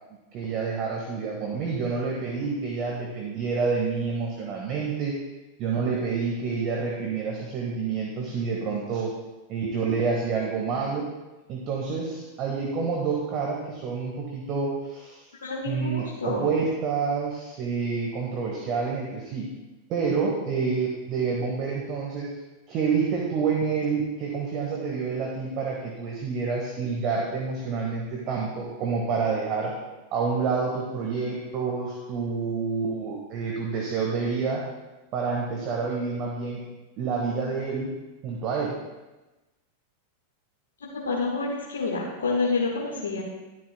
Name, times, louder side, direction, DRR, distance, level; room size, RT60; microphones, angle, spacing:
voice 1, 0.3-5.1 5.6-9.1 9.5-11.1 11.5-15.2 15.6-19.5 19.9-22.3 22.7-29.8 30.1-34.7 35.1-36.6 37.0-38.0 38.2-38.8, right 5 dB, 40° right, -2 dB, 1.6 m, -28 dB
voice 2, 15.4-16.4 40.9-43.2, left 3 dB, 70° left, -3 dB, 1.5 m, -28 dB
12.0 x 10.5 x 2.3 m, 1.1 s
figure-of-eight pair, 90°, 0 cm